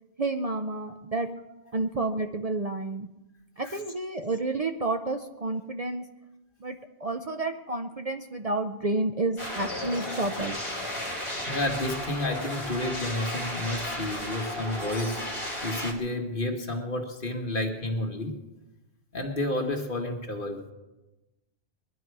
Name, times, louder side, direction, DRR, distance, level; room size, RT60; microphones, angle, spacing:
voice 1, 0.2-1.3 1.7-3.1 3.6-6.0 6.6-10.6, right 2 dB, 40° right, 6 dB, 0.7 m, -30 dB
sound 1, 9.4-15.9, left 1 dB, 25° left, 2.4 m, -34 dB
voice 2, 11.5-15.3 15.6-18.4 19.1-20.6, left 1 dB, 50° left, 2 dB, 1.8 m, -30 dB
21.0 x 11.5 x 4.7 m, 1.0 s
omnidirectional pair, 1.1 m